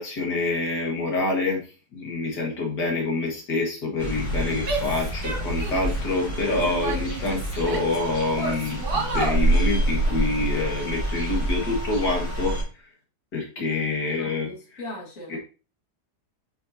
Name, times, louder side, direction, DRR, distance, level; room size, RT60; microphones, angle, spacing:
voice 1, 0.0-12.8 13.3-14.8 15.3-15.4, left 3 dB, 75° left, -1 dB, 2.4 m, -27 dB
sound 1, 4.0-12.6, right 1 dB, 15° right, 3.7 m, -27 dB
Female speech woman speaking / Yell, 4.6-6.0 6.4-8.0 8.3-9.4, right 3 dB, 65° right, 2.9 m, -30 dB
voice 2, 14.2-15.4, left 1 dB, 50° left, -2 dB, 2.3 m, -39 dB
8.1 x 5.8 x 2.8 m, 0.35 s
omnidirectional pair, 1.8 m